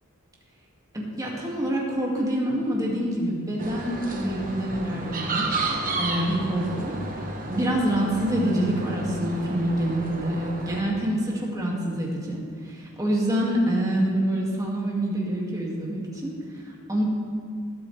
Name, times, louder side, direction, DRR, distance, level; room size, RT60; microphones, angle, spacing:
voice 1, 0.9-5.5 6.0-6.9 7.4-16.3 16.9-17.0, right 1 dB, 15° right, -3 dB, 2.2 m, -26 dB
sound 1, 3.6-10.8, right 2 dB, 40° right, 1.3 m, -32 dB
20.0 x 8.6 x 3.4 m, 2.1 s
head